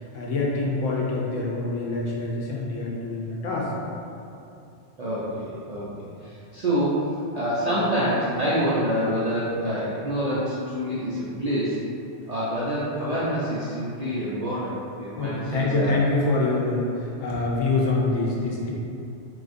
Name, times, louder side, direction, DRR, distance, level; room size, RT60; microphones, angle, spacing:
voice 1, 0.0-3.7 15.1-18.7, left 2 dB, 85° left, -4 dB, 1.0 m, -25 dB
voice 2, 5.0-7.1 7.3-11.8 12.3-15.9 16.5-16.6, equal, 65° right, -9 dB, 0.4 m, -27 dB
3.7 x 2.5 x 2.5 m, 2.6 s
omnidirectional pair, 1.3 m